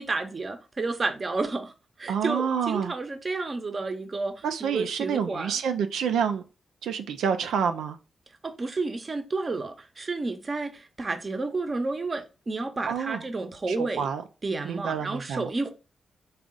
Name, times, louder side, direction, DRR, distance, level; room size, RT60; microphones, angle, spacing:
voice 1, 0.0-1.7 2.0-5.6 8.4-14.1 14.4-15.7, right 3 dB, 45° right, 0.8 m, -31 dB
voice 2, 2.1-2.9 4.4-6.4 6.8-8.0 12.9-13.2 13.7-14.2 14.6-15.5, right 7 dB, 80° right, 0.4 m, -28 dB
3.6 x 2.4 x 3.8 m
supercardioid pair, 40°, 0 cm